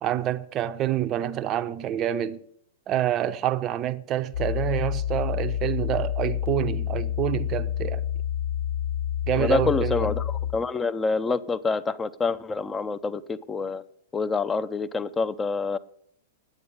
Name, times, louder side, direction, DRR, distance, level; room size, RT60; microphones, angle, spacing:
voice 1, 0.0-2.4 2.9-8.0 9.3-10.2, right 12 dB, 30° right, 0.7 m, -27 dB
sound 1, 4.3-10.5, left 10 dB, 55° left, 0.7 m, -28 dB
voice 2, 9.4-13.8 14.1-15.8, left 4 dB, 15° left, 0.6 m, -27 dB
10.0 x 8.6 x 8.4 m
figure-of-eight pair, 105°, 0 cm